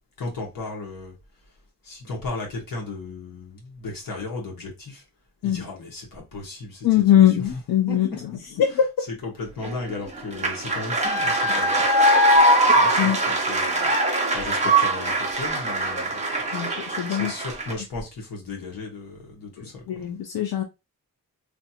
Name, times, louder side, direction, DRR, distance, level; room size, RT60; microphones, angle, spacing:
voice 1, 0.2-1.1 1.8-5.0 5.4-6.9 7.1-7.6 7.9-8.2 8.7-8.8 9.1-11.8 12.7-13.9 14.3-16.2 17.1-20.1, left 3 dB, 70° left, 1.4 m, -35 dB
voice 2, 6.8-8.1 8.6-8.8 13.0-13.2 16.5-17.3 19.9-20.6, left 11 dB, 90° left, 0.5 m, -21 dB
sound 1, 9.6-17.7, right 1 dB, 20° right, 0.7 m, -21 dB
3.2 x 2.5 x 2.8 m
wide cardioid pair, 145°, 35 cm